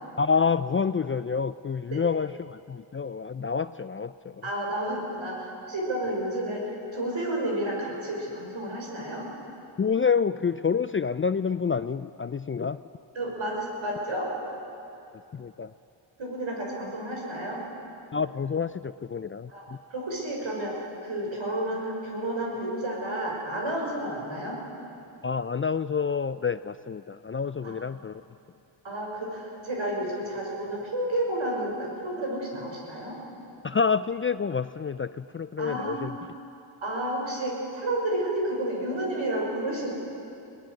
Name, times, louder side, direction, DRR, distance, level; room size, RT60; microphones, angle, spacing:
voice 1, 0.2-4.5 9.8-12.8 15.3-15.7 18.1-19.5 25.2-28.2 33.6-36.2, left 5 dB, 30° left, 14 dB, 0.4 m, -28 dB
voice 2, 4.4-9.3 13.1-14.3 16.2-17.6 19.5-19.6 19.9-20.8 21.0-24.6 27.6-27.8 28.8-33.2 35.6-36.0 36.8-39.9, right 1 dB, 70° right, -1 dB, 5.9 m, -31 dB
23.0 x 18.0 x 6.5 m, 2.7 s
cardioid pair, 55°, 49 cm